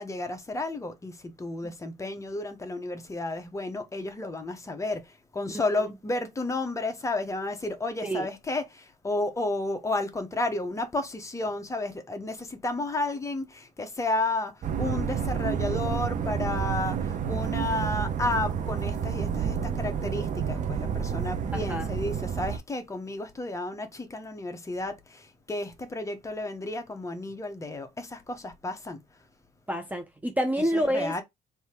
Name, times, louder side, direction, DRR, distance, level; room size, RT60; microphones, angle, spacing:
voice 1, 0.0-29.0 30.7-31.2, left 2 dB, 20° left, 1.0 m, -32 dB
sound 1, 14.6-22.6, right 7 dB, 50° right, 0.8 m, -29 dB
voice 2, 21.5-21.9 29.7-31.1, equal, 10° right, 0.7 m, -28 dB
3.5 x 2.9 x 4.4 m
cardioid pair, 110°, 17 cm